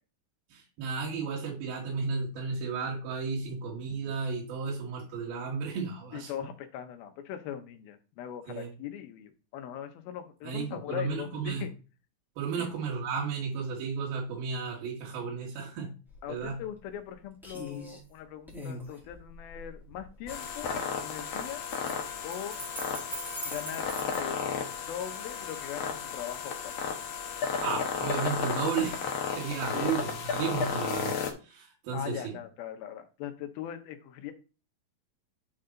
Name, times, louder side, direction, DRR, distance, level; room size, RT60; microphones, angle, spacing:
voice 1, 0.5-6.3 8.5-8.7 10.4-11.6 12.4-15.9 16.3-16.6 27.4-31.2 31.5-32.4, right 5 dB, 80° right, -2 dB, 3.6 m, -33 dB
voice 2, 6.1-11.7 12.6-12.7 16.2-20.7 21.0-21.6 22.2-22.6 23.5-23.9 24.2-26.7 29.7-30.0 31.9-34.3, left 10 dB, 85° left, 8 dB, 2.8 m, -40 dB
sound 1, 16.1-16.2 16.6-17.1 17.4-18.0 18.5-20.4 21.2-24.2, equal, ahead, 1.4 m, -41 dB
sound 2, 20.3-31.3, left 6 dB, 65° left, 1.7 m, -33 dB
10.0 x 4.2 x 3.8 m, 0.34 s
omnidirectional pair, 4.2 m